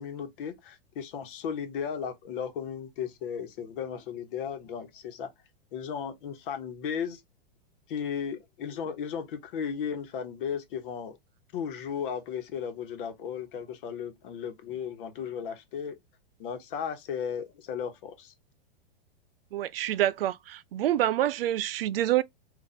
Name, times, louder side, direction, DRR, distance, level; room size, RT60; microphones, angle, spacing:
voice 1, 0.0-5.3 5.7-7.2 7.9-11.2 11.5-16.0 16.4-18.3, left 7 dB, 60° left, 1.1 m, -35 dB
voice 2, 19.5-22.2, right 13 dB, 75° right, 0.5 m, -27 dB
2.6 x 2.4 x 4.1 m
hypercardioid pair, 120°, 29 cm